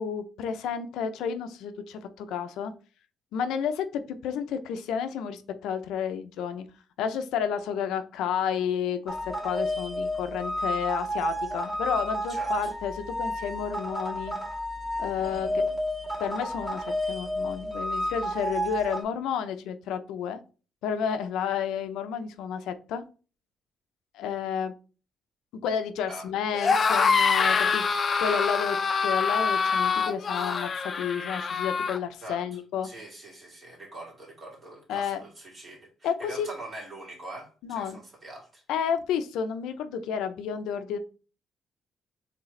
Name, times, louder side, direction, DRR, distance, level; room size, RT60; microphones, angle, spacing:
voice 1, 0.0-2.7 3.3-6.6 7.0-14.3 15.0-15.6 16.2-20.4 20.8-23.0 24.1-24.7 25.6-27.8 28.2-28.8 29.0-32.9 34.9-35.2 36.0-36.5 37.6-38.0 38.7-41.0, left 7 dB, 90° left, 0.5 m, -31 dB
sound 1, 9.1-19.0, equal, 15° right, 2.0 m, -31 dB
voice 2, 12.3-12.7 26.1-26.3 32.2-38.6, right 1 dB, 35° right, 2.3 m, -43 dB
sound 2, 26.5-32.0, left 5 dB, 40° left, 0.5 m, -25 dB
4.7 x 3.3 x 3.2 m
cardioid pair, 90°, 0 cm